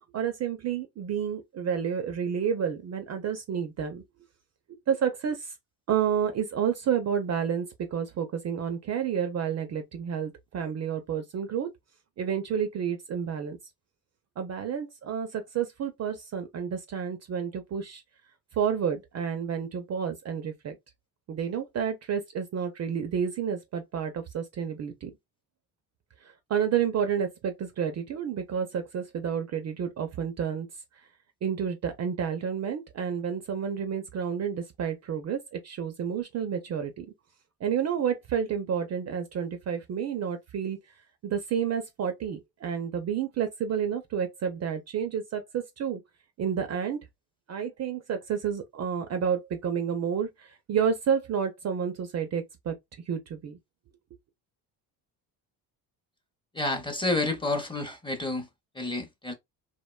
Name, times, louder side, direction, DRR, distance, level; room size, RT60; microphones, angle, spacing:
voice 1, 0.1-4.0 4.9-5.5 5.9-11.7 12.2-13.6 14.4-18.0 18.6-20.8 21.3-25.1 26.5-30.7 31.4-37.1 37.6-40.8 41.2-46.0 46.4-47.0 47.5-52.7 53.1-53.6, right 7 dB, 40° right, 0.4 m, -30 dB
voice 2, 56.5-58.5 58.8-59.3, left 2 dB, 10° left, 0.6 m, -29 dB
2.5 x 2.2 x 2.2 m
supercardioid pair, 90°, 44 cm